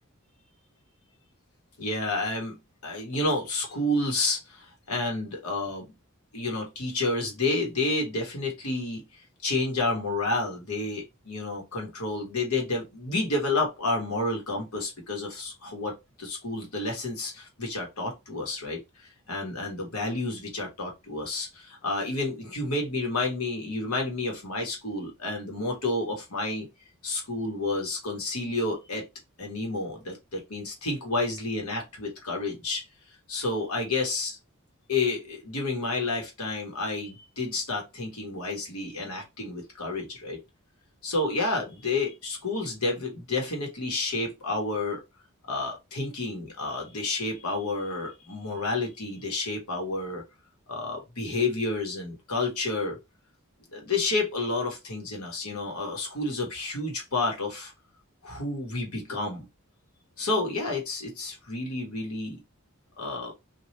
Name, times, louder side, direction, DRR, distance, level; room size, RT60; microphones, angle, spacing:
voice 1, 1.8-2.6 2.8-5.8 6.3-9.0 9.4-15.9 16.2-18.8 19.3-26.7 27.0-29.0 29.4-32.8 33.3-34.4 34.9-40.4 41.0-45.0 45.5-50.2 50.7-53.0 53.7-57.7 58.2-59.5 60.2-62.4 63.0-63.3, left 2 dB, 90° left, 1.3 m, -30 dB
3.2 x 2.5 x 2.8 m
head